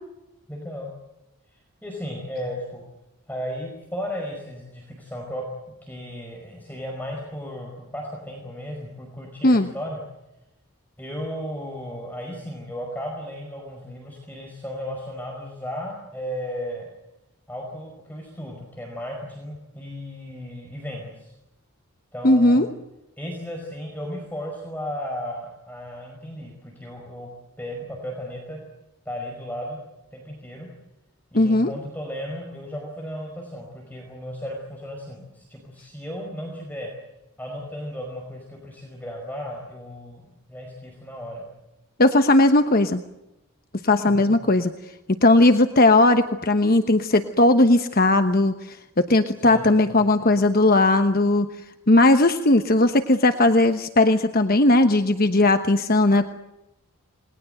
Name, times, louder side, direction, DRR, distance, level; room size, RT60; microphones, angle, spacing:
voice 1, 0.5-0.9 1.5-2.9 3.3-5.4 5.8-10.0 11.0-16.9 17.5-21.3 22.1-22.6 23.2-27.3 27.6-28.6 29.0-29.8 30.1-30.7 31.3-36.9 37.4-40.2 40.5-41.5 43.9-44.3 49.4-50.3, equal, 10° left, -1 dB, 5.2 m, -35 dB
voice 2, 22.2-22.7 31.3-31.7 42.0-43.0 43.8-44.7 45.2-51.5 51.9-56.3, left 2 dB, 40° left, 8 dB, 1.1 m, -18 dB
28.5 x 21.0 x 7.9 m, 0.96 s
head